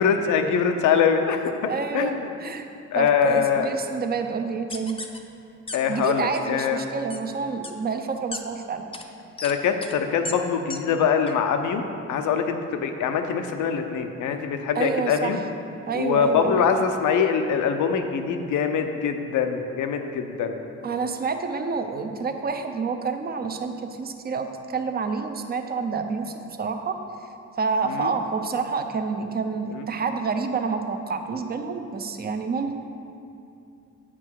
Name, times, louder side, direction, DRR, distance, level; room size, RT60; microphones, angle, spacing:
voice 1, 0.0-2.3 2.9-3.7 5.7-6.8 9.4-11.8 12.1-15.4 15.9-20.6 27.9-28.1 29.7-29.8, left 6 dB, 80° left, 6 dB, 0.7 m, -23 dB
voice 2, 1.7-2.1 2.4-2.7 2.9-5.0 5.9-8.8 14.8-15.4 15.9-16.6 20.8-27.0 27.6-32.7, right 5 dB, 30° right, 6 dB, 0.7 m, -28 dB
sound 1, 4.7-5.2 5.7-5.8 6.1-6.4 7.1-7.2 7.6-7.7 8.3-8.4 8.9-9.0 9.4-9.5 9.8-9.9 10.2-10.3 10.7-10.8 11.3-11.4, left 3 dB, 20° left, 0.7 m, -34 dB
8.6 x 6.1 x 4.6 m, 2.7 s
cardioid pair, 90°, 30 cm